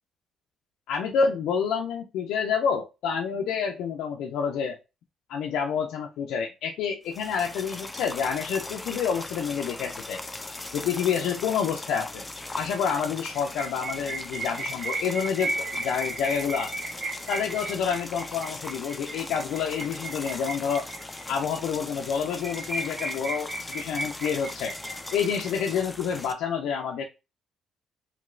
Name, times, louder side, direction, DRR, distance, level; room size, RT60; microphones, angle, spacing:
voice 1, 0.9-4.8 5.3-10.2 10.7-12.2 12.6-16.7 17.3-20.9 21.3-24.7 25.1-27.0, left 6 dB, 80° left, 2 dB, 0.4 m, -28 dB
sound 1, 7.0-26.3, left 2 dB, 20° left, 0.4 m, -39 dB
sound 2, 13.4-21.3 21.7-21.8 22.0-22.1 22.4-25.5, right 2 dB, 30° right, 1.7 m, -35 dB
2.9 x 2.9 x 2.5 m, 0.27 s
supercardioid pair, 75°, 0 cm